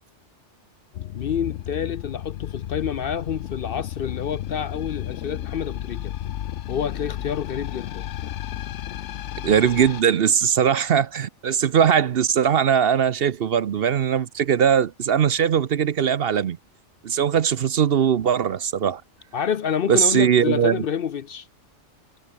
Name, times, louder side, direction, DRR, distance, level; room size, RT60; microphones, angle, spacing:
sound 1, 0.9-10.0, left 12 dB, 75° left, 1.0 m, -33 dB
voice 1, 1.1-6.1 6.7-8.1 19.3-21.5, left 8 dB, 55° left, 0.8 m, -28 dB
voice 2, 9.4-16.6 17.0-19.0 19.9-20.8, right 8 dB, 55° right, 0.9 m, -20 dB
omnidirectional pair, 1.2 m